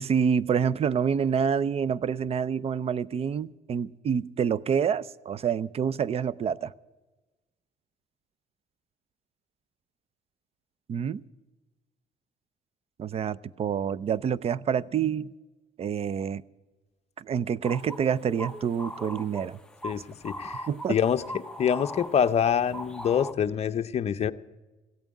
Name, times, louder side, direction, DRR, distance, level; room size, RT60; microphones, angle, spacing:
voice 1, 0.0-6.7 10.9-11.2 13.0-15.3 15.8-16.4 17.2-19.6 20.7-21.0, right 7 dB, 35° right, 0.5 m, -27 dB
sound 1, 17.6-23.3, equal, 5° left, 0.7 m, -40 dB
voice 2, 19.8-21.2 21.6-24.3, left 8 dB, 40° left, 0.7 m, -26 dB
15.5 x 9.0 x 9.7 m
cardioid pair, 110°, 17 cm